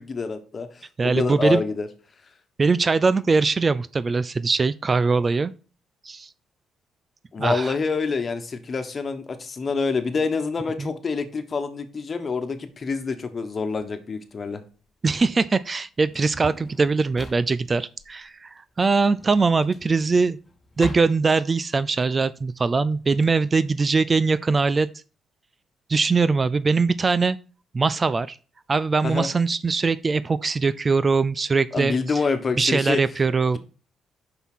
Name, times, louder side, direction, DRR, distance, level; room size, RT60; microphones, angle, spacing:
voice 1, 0.0-1.9 7.3-14.6 29.0-29.3 31.7-33.0, left 4 dB, 40° left, 1.3 m, -27 dB
voice 2, 1.0-1.6 2.6-5.5 6.0-6.3 7.4-7.7 10.8-10.9 15.0-20.4 20.8-24.9 25.9-27.4 27.7-28.4 28.7-32.2 32.6-33.6, right 4 dB, 35° right, 0.4 m, -22 dB
Drawer open or close, 13.7-23.3, left 2 dB, 25° left, 1.5 m, -43 dB
5.8 x 5.6 x 6.2 m
cardioid pair, 80°, 0 cm